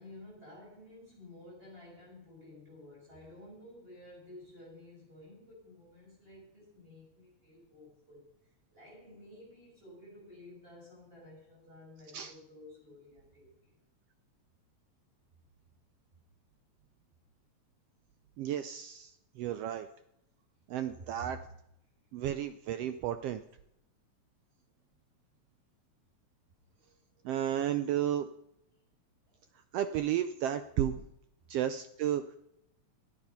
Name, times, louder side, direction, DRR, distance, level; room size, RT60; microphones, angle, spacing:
voice 1, 0.0-13.7 21.0-21.4 23.2-23.3 26.7-27.2 29.3-29.4 31.5-31.6, left 1 dB, 20° right, -4 dB, 6.4 m, -53 dB
voice 2, 18.4-19.9 20.7-21.4 22.1-23.4 27.2-28.3 29.7-31.0 31.5-32.2, right 11 dB, 85° right, 10 dB, 1.3 m, -33 dB
13.5 x 9.8 x 5.6 m, 0.80 s
omnidirectional pair, 3.3 m